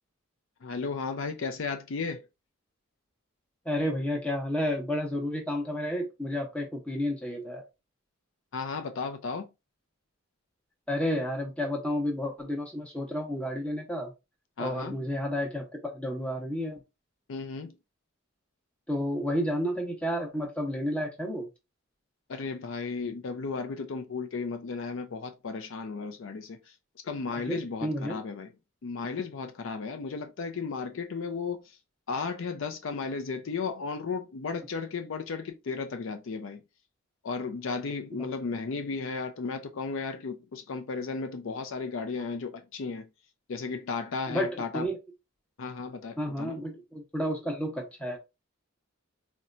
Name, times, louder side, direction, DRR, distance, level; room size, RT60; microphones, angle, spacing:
voice 1, 0.6-2.2 8.5-9.5 14.6-15.0 17.3-17.7 22.3-26.6 27.0-28.5 28.8-31.6 32.1-36.6 37.2-43.1 43.5-44.9 45.6-46.6, left 4 dB, 60° left, 0.4 m, -34 dB
voice 2, 3.7-7.6 10.9-14.1 14.6-16.8 18.9-21.5 27.5-28.2 38.1-38.3 44.3-45.0 46.2-48.2, equal, 5° left, 0.8 m, -31 dB
4.2 x 2.2 x 2.5 m
head